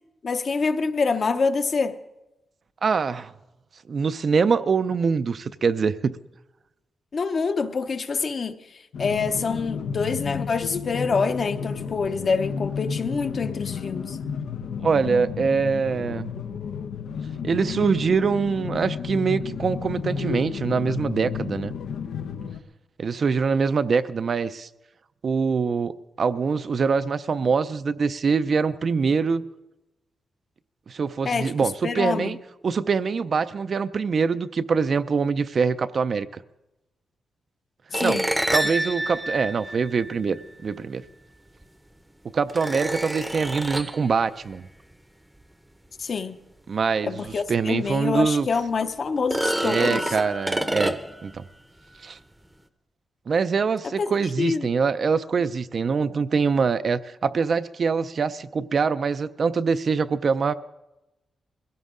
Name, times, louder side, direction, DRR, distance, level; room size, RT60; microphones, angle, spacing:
voice 1, 0.2-2.0 7.1-8.6 9.0-14.2 31.2-32.3 37.9-38.3 46.0-46.3 47.1-50.1 54.0-54.1 54.4-54.7, left 5 dB, 40° left, 0.8 m, -26 dB
voice 2, 2.8-3.3 3.9-6.2 14.8-16.3 17.4-21.7 23.0-24.7 25.2-29.4 30.9-32.4 32.6-36.4 38.0-38.2 38.5-41.0 42.3-44.7 46.7-48.5 49.6-50.9 51.2-51.4 52.0-52.2 53.3-60.5, right 5 dB, 40° right, 0.4 m, -24 dB
sound 1, 8.9-22.6, left 6 dB, 90° left, 0.8 m, -32 dB
sound 2, 37.9-40.4 41.6-41.7 42.5-44.0 47.3-47.4 47.9-48.0 49.2-51.3, right 1 dB, 5° right, 0.7 m, -27 dB
22.0 x 16.5 x 3.7 m
wide cardioid pair, 165°, 0 cm